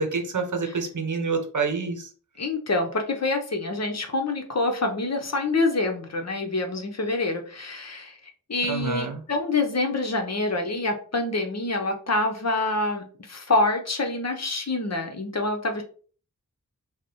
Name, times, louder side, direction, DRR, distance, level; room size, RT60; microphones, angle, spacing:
voice 1, 0.0-2.1 8.7-9.2, right 4 dB, 60° right, 5 dB, 0.8 m, -27 dB
voice 2, 2.4-8.2 8.5-15.8, left 2 dB, 50° left, 4 dB, 0.8 m, -26 dB
4.8 x 2.1 x 3.0 m, 0.41 s
wide cardioid pair, 65°, 34 cm